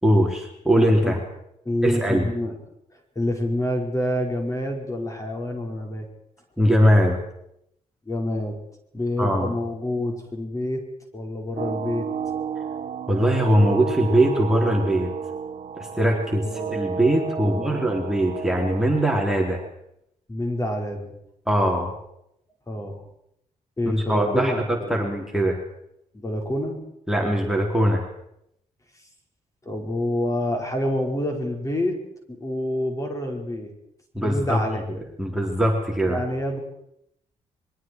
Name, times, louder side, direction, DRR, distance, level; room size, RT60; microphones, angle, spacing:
voice 1, 0.0-1.2 1.8-2.3 6.6-7.2 9.2-9.6 13.1-15.1 16.0-19.6 21.5-21.9 24.1-25.6 27.1-28.0 34.1-34.6 35.2-36.2, equal, 5° right, -1 dB, 4.2 m, -21 dB
voice 2, 0.8-1.2 1.7-2.6 3.2-6.1 8.1-8.6 8.9-10.8 11.1-12.1 16.4-16.8 17.4-17.8 20.3-21.1 22.7-23.0 23.8-25.0 26.1-26.8 29.7-32.0 32.3-33.7 34.2-34.8 36.0-36.6, left 1 dB, 25° left, 2 dB, 5.5 m, -27 dB
sound 1, 11.6-19.7, right 7 dB, 65° right, 0.9 m, -32 dB
26.5 x 22.0 x 4.9 m, 0.78 s
cardioid pair, 80°, 14 cm